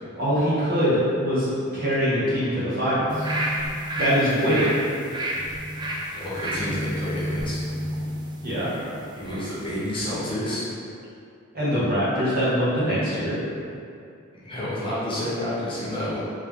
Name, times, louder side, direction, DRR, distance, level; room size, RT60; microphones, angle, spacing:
voice 1, 0.2-3.3 3.9-4.8 8.4-8.7 11.5-13.4, equal, 45° right, -10 dB, 1.2 m, -23 dB
sound 1, 3.1-9.5 9.9-10.0, equal, 20° right, 0.3 m, -30 dB
voice 2, 6.1-7.6 9.2-10.6 14.4-16.2, left 1 dB, 25° left, -9 dB, 0.9 m, -29 dB
3.3 x 3.2 x 3.6 m, 2.5 s
head